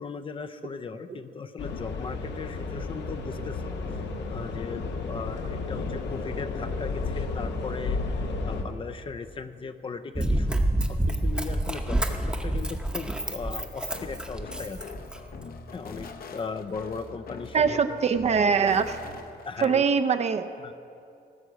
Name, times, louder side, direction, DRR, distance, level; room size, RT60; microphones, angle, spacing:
voice 1, 0.0-3.7 4.3-15.0 15.7-18.0 19.4-19.8 20.6-20.7, left 5 dB, 30° left, 9 dB, 0.5 m, -38 dB
sound 1, 1.6-8.6, left 3 dB, 90° left, 1.3 m, -32 dB
Run, 10.2-15.4 16.0-16.1, right 1 dB, 5° right, 0.8 m, -28 dB
sound 2, 13.9-19.5, left 4 dB, 60° left, 0.9 m, -43 dB
voice 2, 17.5-19.0 19.6-20.5, right 6 dB, 40° right, 9 dB, 0.5 m, -23 dB
17.5 x 6.1 x 8.0 m, 2.5 s
wide cardioid pair, 170°, 18 cm